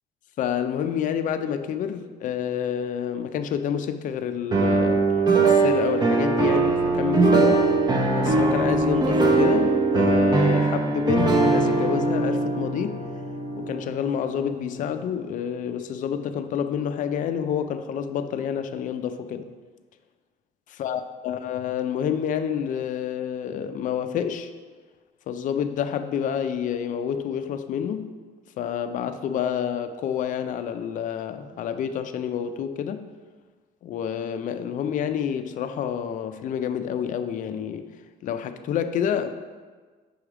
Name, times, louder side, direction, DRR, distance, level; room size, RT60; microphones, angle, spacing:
voice 1, 0.4-5.1 5.4-7.7 8.2-13.0 13.6-19.5 20.7-24.5 25.3-28.1 28.6-33.0 33.8-37.9 38.2-39.4, left 8 dB, 50° left, 9 dB, 0.4 m, -28 dB
sound 1, 4.5-14.4, right 3 dB, 25° right, 0.7 m, -21 dB
6.2 x 3.3 x 4.8 m, 1.5 s
cardioid pair, 110°, 17 cm